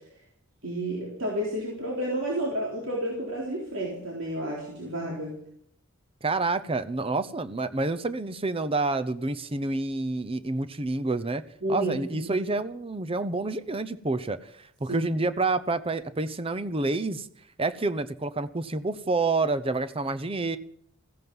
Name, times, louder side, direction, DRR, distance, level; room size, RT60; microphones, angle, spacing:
voice 1, 0.6-5.4 11.6-12.3 14.9-15.1, right 1 dB, 70° right, -4 dB, 3.8 m, -31 dB
voice 2, 6.2-11.4 11.7-14.5 14.8-17.3 17.6-20.6, right 3 dB, 30° right, 12 dB, 0.7 m, -28 dB
15.5 x 15.0 x 5.5 m, 0.67 s
head